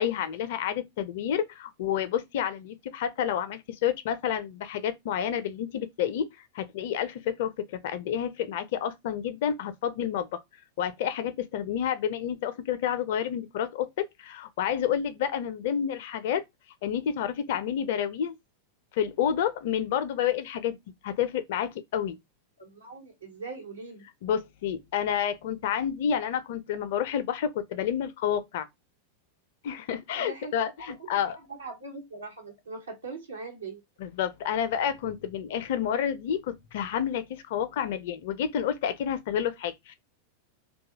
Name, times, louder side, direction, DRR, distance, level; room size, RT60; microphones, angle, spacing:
voice 1, 0.0-6.3 6.5-10.4 10.8-16.4 16.8-18.4 18.9-20.8 21.0-22.2 24.2-28.7 29.6-31.4 34.0-39.9, left 9 dB, 55° left, 0.4 m, -29 dB
voice 2, 22.6-24.0 30.1-30.6 31.0-31.1 31.3-33.8, right 3 dB, 75° right, 1.1 m, -41 dB
2.6 x 2.2 x 2.8 m
figure-of-eight pair, 90°, 0 cm